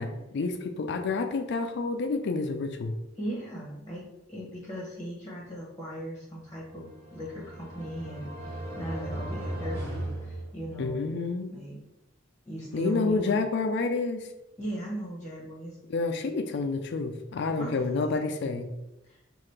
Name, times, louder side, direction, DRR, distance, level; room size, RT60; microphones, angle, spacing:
voice 1, 0.0-2.9 10.8-11.5 12.7-14.3 15.9-18.7, left 3 dB, 60° left, 6 dB, 0.4 m, -29 dB
voice 2, 3.2-11.1 11.5-11.8 12.4-13.4 14.6-15.8 17.6-18.3 19.0-19.2, right 1 dB, 15° left, -5 dB, 1.0 m, -38 dB
sound 1, 6.6-11.1, right 1 dB, 60° right, 1.5 m, -37 dB
5.6 x 2.5 x 3.2 m, 0.93 s
head